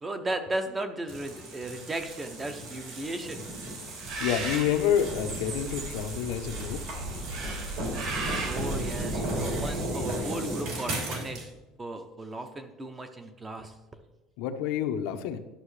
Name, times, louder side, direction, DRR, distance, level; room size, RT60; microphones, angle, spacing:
voice 1, 0.0-3.5 8.4-11.5 11.8-13.7, right 2 dB, 15° right, 8 dB, 0.6 m, -35 dB
sound 1, 1.1-11.5, right 1 dB, 65° right, 2.9 m, -36 dB
Bird, 4.0-10.4, right 2 dB, 50° right, 1.7 m, -36 dB
voice 2, 4.2-6.8 14.4-15.4, left 9 dB, 75° left, 7 dB, 0.7 m, -28 dB
11.5 x 6.3 x 3.2 m, 1.0 s
cardioid pair, 175°, 0 cm